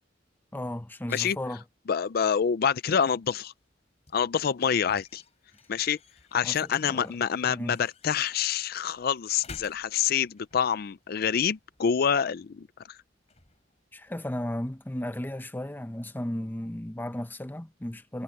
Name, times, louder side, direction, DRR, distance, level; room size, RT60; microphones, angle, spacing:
voice 1, 0.5-1.6 6.4-7.1 7.5-7.8 13.9-18.2, left 1 dB, 10° left, 0.7 m, -35 dB
voice 2, 1.9-3.5 4.1-5.2 5.7-6.0 6.3-13.0, left 7 dB, 55° left, 0.4 m, -27 dB
sound 1, 2.7-15.3, left 3 dB, 35° left, 5.2 m, -55 dB
head